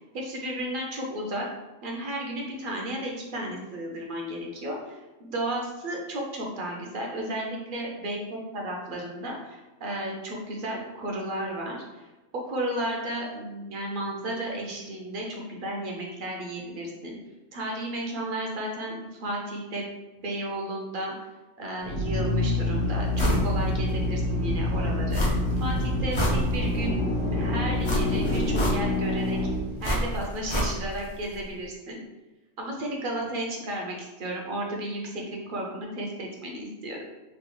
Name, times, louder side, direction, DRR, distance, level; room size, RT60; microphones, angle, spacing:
voice 1, 0.1-1.5 1.8-12.1 12.3-17.2 17.5-19.8 20.2-21.1 21.6-25.2 25.6-29.4 29.8-32.0 32.6-37.0, right 1 dB, 55° right, -1 dB, 0.7 m, -33 dB
Drill, 21.8-30.4, left 1 dB, 80° left, 1.1 m, -27 dB
sound 1, 23.2-23.5 23.9-24.0 25.1-25.6 25.9-26.9 27.8-29.1 29.8-31.1 31.3-31.4, equal, 40° left, 0.4 m, -27 dB
3.3 x 2.3 x 3.0 m, 1.1 s
omnidirectional pair, 1.2 m